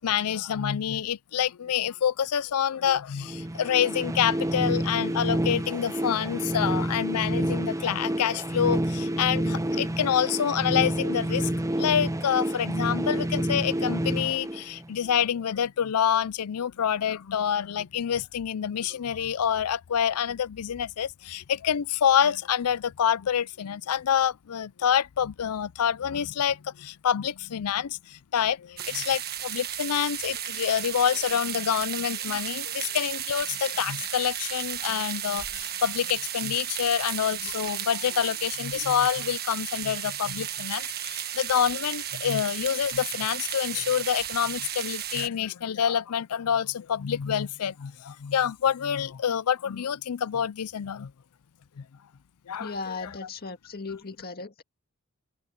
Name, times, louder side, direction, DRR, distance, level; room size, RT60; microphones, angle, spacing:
voice 1, 0.0-11.5 11.8-51.1 51.8-51.9 52.5-53.1, left 8 dB, 80° left, 0.5 m, -27 dB
sound 1, 3.2-15.1, right 1 dB, 15° right, 0.7 m, -29 dB
sound 2, 28.8-45.3, right 10 dB, 45° right, 1.5 m, -34 dB
voice 2, 52.6-54.6, left 4 dB, 45° left, 1.9 m, -37 dB
head